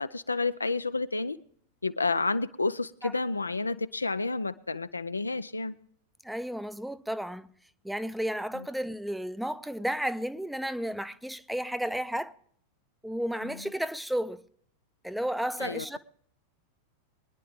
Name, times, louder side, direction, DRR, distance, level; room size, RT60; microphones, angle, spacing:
voice 1, 0.0-1.4 1.8-5.7 8.5-8.7 15.6-16.0, left 3 dB, 80° left, 0.5 m, -30 dB
voice 2, 6.2-7.5 7.8-12.3 13.0-14.4 15.0-16.0, equal, ahead, 0.6 m, -32 dB
23.0 x 10.5 x 3.6 m
figure-of-eight pair, 90°, 0 cm